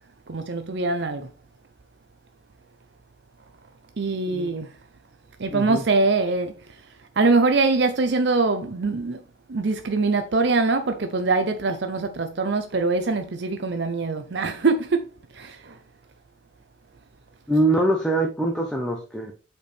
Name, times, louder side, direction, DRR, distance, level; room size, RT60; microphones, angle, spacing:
voice 1, 0.3-1.3 4.0-4.7 5.4-6.5 7.2-9.2 9.5-15.0 15.4-15.6, right 3 dB, 60° right, 0.6 m, -23 dB
voice 2, 5.5-5.8 17.5-19.3, right 1 dB, 5° left, 0.7 m, -23 dB
7.9 x 4.4 x 3.4 m
head